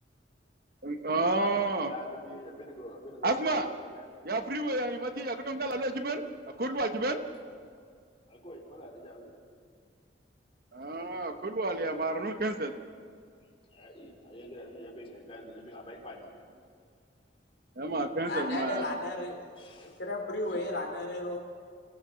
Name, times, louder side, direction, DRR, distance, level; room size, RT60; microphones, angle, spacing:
voice 1, 0.8-1.9 3.2-3.7 4.2-6.2 6.6-7.2 10.7-12.7 17.8-19.0, right 2 dB, 55° right, 7 dB, 1.2 m, -30 dB
voice 2, 1.3-4.1 8.3-9.4 13.7-16.5 19.6-20.0, left 1 dB, 30° left, -1 dB, 3.8 m, -46 dB
voice 3, 18.3-19.4 19.8-21.4, left 1 dB, 70° left, 2 dB, 3.3 m, -34 dB
29.5 x 16.5 x 5.8 m, 2.2 s
head